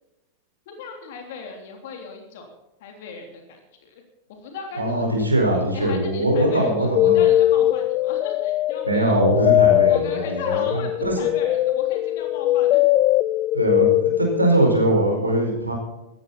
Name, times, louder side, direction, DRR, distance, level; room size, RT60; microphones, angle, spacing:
voice 1, 0.6-2.5 2.8-4.0 4.3-9.2 9.8-12.9, left 4 dB, 55° left, 3 dB, 3.3 m, -37 dB
voice 2, 4.8-7.3 8.8-11.1 13.5-15.7, right 1 dB, 80° right, 1 dB, 4.9 m, -21 dB
sound 1, 6.3-14.6, left 14 dB, 35° left, 0.4 m, -20 dB
16.5 x 14.0 x 4.2 m, 0.97 s
figure-of-eight pair, 90°, 0 cm